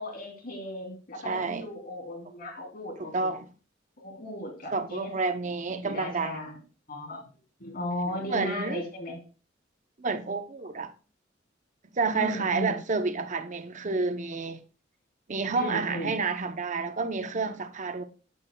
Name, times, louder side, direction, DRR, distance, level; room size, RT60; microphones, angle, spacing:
voice 1, 0.0-3.3 4.0-5.1 5.8-6.6 6.9-7.2 7.6-9.2 12.1-12.8 15.5-16.1, left 1 dB, 50° left, 2.9 m, -36 dB
voice 2, 1.2-1.7 3.0-3.5 4.7-6.4 8.3-8.8 10.0-10.9 11.9-14.6 15.3-18.0, right 4 dB, 40° right, 0.7 m, -29 dB
12.0 x 8.8 x 2.2 m
head